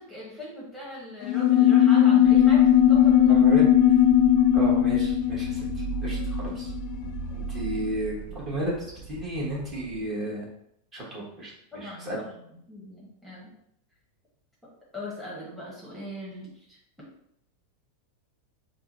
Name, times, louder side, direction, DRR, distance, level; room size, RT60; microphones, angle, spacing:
voice 1, 0.0-3.4 11.7-12.3 12.7-13.5 14.9-16.5, left 1 dB, ahead, -7 dB, 1.2 m, -39 dB
sound 1, 1.2-7.2, left 10 dB, 40° left, 0.4 m, -19 dB
sound 2, 2.2-10.1, right 6 dB, 55° right, 1.3 m, -37 dB
voice 2, 3.3-4.0 4.5-6.7 7.3-8.7 9.1-10.5 10.9-12.2, right 1 dB, 25° right, -5 dB, 1.3 m, -33 dB
3.5 x 2.2 x 4.1 m, 0.75 s
figure-of-eight pair, 90°, 0 cm